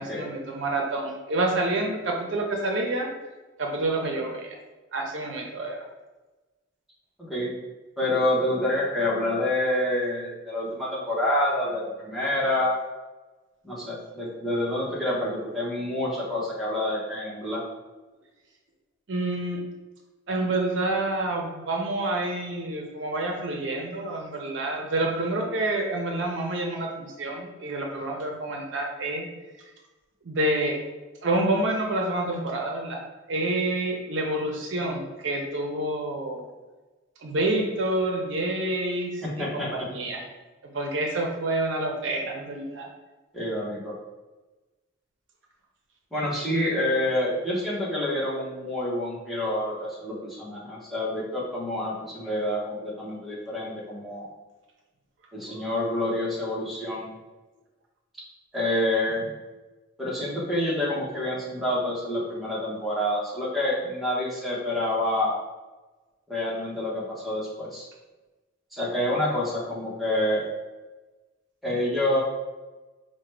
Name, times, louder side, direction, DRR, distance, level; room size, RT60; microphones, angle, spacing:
voice 1, 0.0-3.1 3.6-4.5 4.9-5.8 19.1-19.6 20.3-29.3 30.2-30.7 31.2-33.0 33.3-36.4 37.2-40.2 40.7-42.9 55.5-55.6, right 2 dB, 65° right, 1 dB, 0.5 m, -28 dB
voice 2, 7.2-7.5 8.0-12.7 13.6-17.6 39.2-39.7 43.3-43.9 46.1-54.3 55.3-57.1 58.5-59.3 60.0-65.4 66.3-67.9 68.7-70.4 71.6-72.2, left 1 dB, ahead, -6 dB, 0.8 m, -27 dB
4.7 x 2.1 x 3.2 m, 1.2 s
head